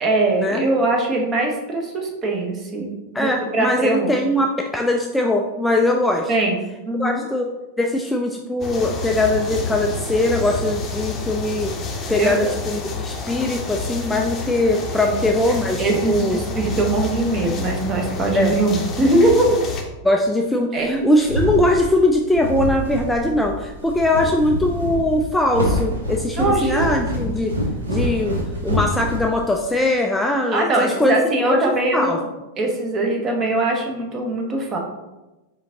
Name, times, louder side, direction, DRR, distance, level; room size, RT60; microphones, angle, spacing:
voice 1, 0.0-4.2 6.3-6.6 6.9-7.2 12.2-12.4 15.0-15.1 15.8-19.6 20.7-21.1 26.4-26.9 30.5-32.3 32.6-34.8, right 2 dB, 25° right, 1 dB, 1.0 m, -21 dB
voice 2, 3.1-4.5 4.7-6.3 7.0-7.5 7.8-11.7 12.1-16.4 18.3-18.6 20.0-27.6 27.9-31.1 31.5-32.2, left 1 dB, 5° left, 2 dB, 0.3 m, -21 dB
sound 1, 8.6-19.8, left 3 dB, 25° left, 0.7 m, -29 dB
sound 2, 20.9-29.8, left 1 dB, 70° right, 0.9 m, -26 dB
4.9 x 3.7 x 2.8 m, 1.1 s
figure-of-eight pair, 90°, 0 cm